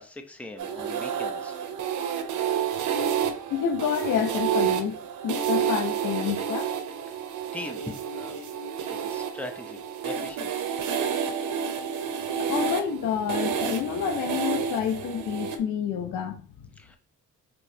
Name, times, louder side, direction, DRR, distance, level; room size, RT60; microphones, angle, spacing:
voice 1, 0.0-1.6 7.5-8.4 8.9-9.8 10.0-10.5 16.8-17.0, left 2 dB, 5° left, 0.6 m, -40 dB
sound 1, 0.6-15.6, right 7 dB, 80° right, 0.7 m, -29 dB
voice 2, 3.5-6.7 12.3-16.7, left 8 dB, 80° left, 0.6 m, -29 dB
4.4 x 3.0 x 2.6 m
cardioid pair, 90°, 30 cm